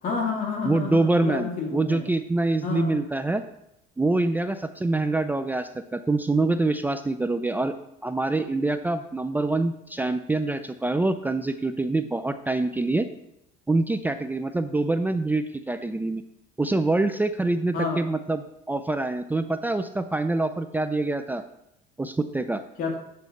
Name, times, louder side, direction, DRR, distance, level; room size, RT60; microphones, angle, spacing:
voice 1, 0.0-2.1 2.6-3.0 17.7-18.0 22.8-22.9, left 4 dB, 50° left, 1 dB, 2.3 m, -29 dB
voice 2, 0.7-3.4 4.0-7.7 8.0-13.1 13.7-16.2 16.6-21.4 22.0-22.6, right 2 dB, 10° right, 9 dB, 0.4 m, -25 dB
8.5 x 4.0 x 6.5 m, 0.82 s
cardioid pair, 120°, 19 cm